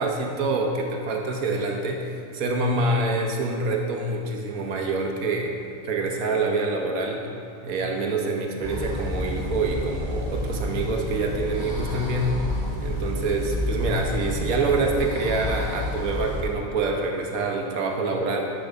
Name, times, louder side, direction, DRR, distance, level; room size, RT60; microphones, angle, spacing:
voice 1, 0.0-5.5 5.8-7.2 7.6-12.4 12.8-18.4, right 3 dB, 90° right, 1 dB, 1.4 m, -26 dB
sound 1, 8.6-16.4, left 1 dB, 15° right, 2.0 m, -30 dB
10.0 x 6.8 x 3.5 m, 2.5 s
omnidirectional pair, 1.4 m